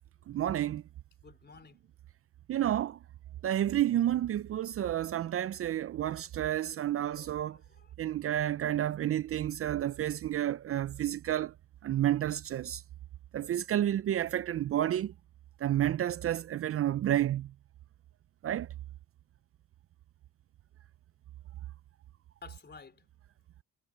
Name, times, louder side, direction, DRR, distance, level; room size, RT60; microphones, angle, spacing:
voice 1, 0.3-0.8 2.5-3.0 3.4-7.6 8.0-11.5 11.8-12.8 13.3-15.1 15.6-17.5 18.4-18.7, right 12 dB, 50° right, 0.5 m, -30 dB
voice 2, 1.2-1.8 6.1-7.9 22.4-23.1, left 5 dB, 35° left, 3.7 m, -54 dB
cardioid pair, 90°, 30 cm